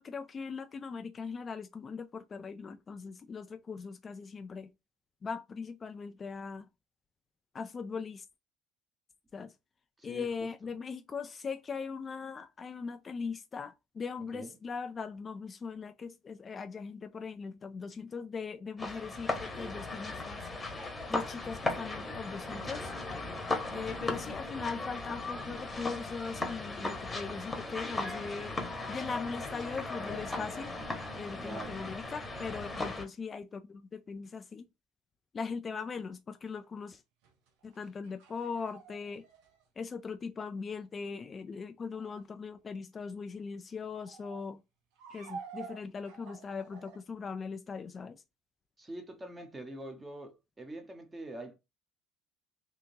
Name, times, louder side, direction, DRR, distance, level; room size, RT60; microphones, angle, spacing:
voice 1, 0.0-4.7 5.2-6.7 7.5-8.3 9.3-9.5 10.0-20.4 21.1-22.9 23.7-28.6 28.9-30.7 31.2-34.7 35.3-37.0 37.6-39.2 39.8-44.6 45.1-48.2, left 5 dB, 30° left, 0.3 m, -40 dB
voice 2, 10.0-10.5 14.3-14.6 31.4-32.0 48.8-51.6, right 1 dB, 15° right, 1.0 m, -44 dB
sound 1, 18.8-33.0, left 2 dB, 15° left, 1.0 m, -37 dB
sound 2, 37.2-39.6 41.9-42.2 43.9-44.4 45.0-47.0, right 6 dB, 85° right, 0.8 m, -49 dB
3.5 x 2.8 x 2.7 m
supercardioid pair, 110°, 0 cm